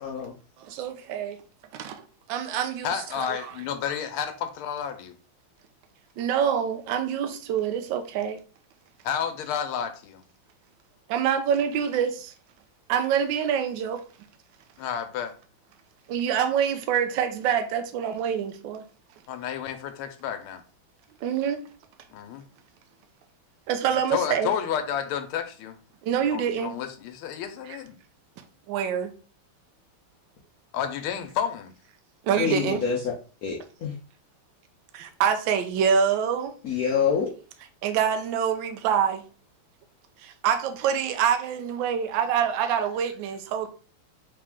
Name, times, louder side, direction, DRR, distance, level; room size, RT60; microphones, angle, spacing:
voice 1, 0.0-0.3 32.3-33.0 33.4-33.9 36.6-37.3, left 6 dB, 75° left, 0.8 m, -26 dB
voice 2, 0.6-1.4 1.7-2.0 2.3-3.5 6.2-8.4 11.1-12.3 12.9-14.0 16.1-18.8 21.2-21.6 23.7-24.5 26.0-26.8 28.7-29.1 32.2-32.8 34.9-36.5 37.8-39.2 40.2-43.7, right 8 dB, 70° right, 1.3 m, -26 dB
voice 3, 2.8-5.2 9.0-10.2 14.8-15.4 19.3-20.6 22.1-22.4 24.1-25.8 26.3-28.0 30.7-31.7, left 8 dB, 90° left, 1.5 m, -31 dB
3.8 x 3.3 x 3.5 m
omnidirectional pair, 2.3 m